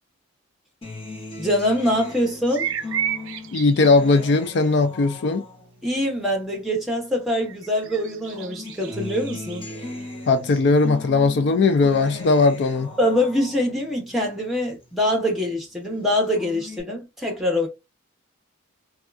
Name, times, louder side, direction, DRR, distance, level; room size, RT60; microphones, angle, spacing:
Acoustic guitar, 0.8-7.5 7.8-15.4 15.8-16.8, left 2 dB, 25° left, 0.8 m, -39 dB
voice 1, 1.4-2.7 5.8-9.7 13.0-17.7, left 1 dB, ahead, 0.9 m, -24 dB
sound 1, 2.6-4.0 7.5-10.0, right 9 dB, 70° right, 0.4 m, -31 dB
voice 2, 3.5-5.5 10.3-12.9, left 3 dB, 55° left, 0.4 m, -18 dB
3.5 x 2.3 x 2.4 m
head